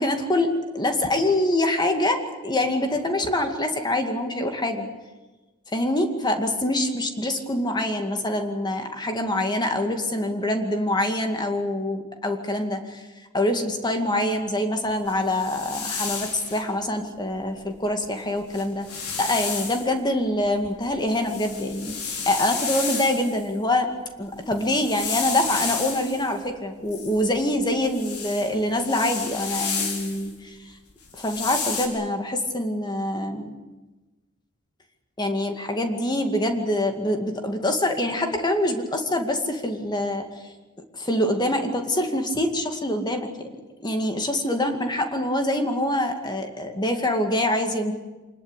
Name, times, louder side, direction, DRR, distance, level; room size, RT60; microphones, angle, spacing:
voice 1, 0.0-4.9 5.7-13.1 13.3-18.9 19.2-23.9 24.2-30.7 31.1-33.5 35.2-40.3 40.9-43.5 43.8-47.9, left 1 dB, 20° left, 5 dB, 2.2 m, -25 dB
sound 1, 15.1-16.6 18.0-18.1 18.4-19.9 20.4-23.4 24.4-26.3 26.9-30.3 31.0-31.9, left 5 dB, 85° left, 4.4 m, -31 dB
25.0 x 20.5 x 8.3 m, 1.2 s
head